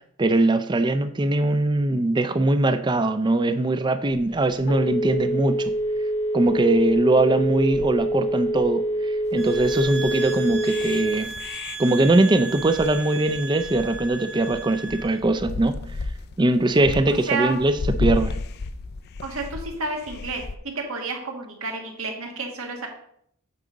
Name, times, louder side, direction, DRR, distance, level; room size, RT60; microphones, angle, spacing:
voice 1, 0.2-5.7 6.3-11.3 11.8-15.8 16.4-18.4, right 2 dB, 20° right, 10 dB, 0.4 m, -21 dB
Telephone, 4.1-11.5, right 1 dB, 85° left, 1.0 m, -26 dB
sound 1, 9.3-20.6, left 3 dB, 50° left, 0.4 m, -33 dB
sound 2, 9.4-15.2, right 4 dB, 55° right, 0.8 m, -36 dB
voice 2, 17.1-17.5 19.2-20.4 20.7-22.9, right 3 dB, 85° right, 1 dB, 1.6 m, -30 dB
8.6 x 4.9 x 3.9 m, 0.68 s
head